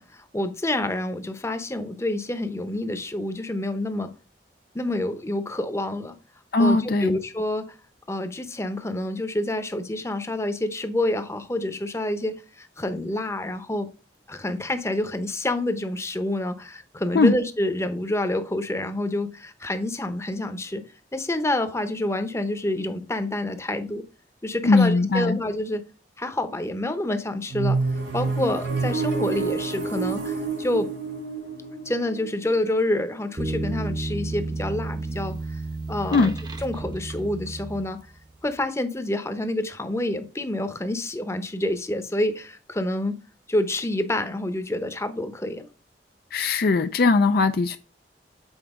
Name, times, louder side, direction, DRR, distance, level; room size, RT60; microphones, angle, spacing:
voice 1, 0.0-4.1 4.7-6.2 6.6-7.7 8.1-13.9 14.3-20.8 21.1-24.0 24.4-25.8 26.2-27.8 28.1-30.9 31.8-35.6 35.9-36.3 36.6-38.0 38.4-43.1 43.5-45.7, left 1 dB, 15° left, 0.8 m, -28 dB
voice 2, 6.5-7.2 17.1-17.3 24.6-25.4 36.1-36.3 46.3-47.8, left 3 dB, 55° left, 0.4 m, -19 dB
sound 1, 27.5-33.3, right 4 dB, 80° right, 3.5 m, -28 dB
sound 2, 33.4-38.3, right 2 dB, 25° right, 0.8 m, -32 dB
8.0 x 4.6 x 3.6 m
head